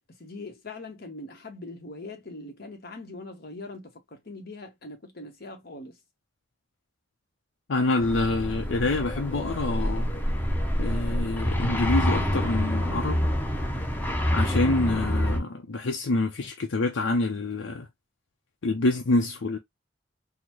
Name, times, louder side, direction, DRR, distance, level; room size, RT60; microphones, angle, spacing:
voice 1, 0.2-6.0, left 2 dB, 55° left, 1.1 m, -41 dB
voice 2, 7.7-10.1 10.8-13.2 14.3-17.9 18.6-19.6, left 2 dB, 85° left, 0.6 m, -26 dB
sound 1, 8.0-15.4, equal, 10° left, 0.7 m, -27 dB
3.9 x 2.1 x 3.0 m
head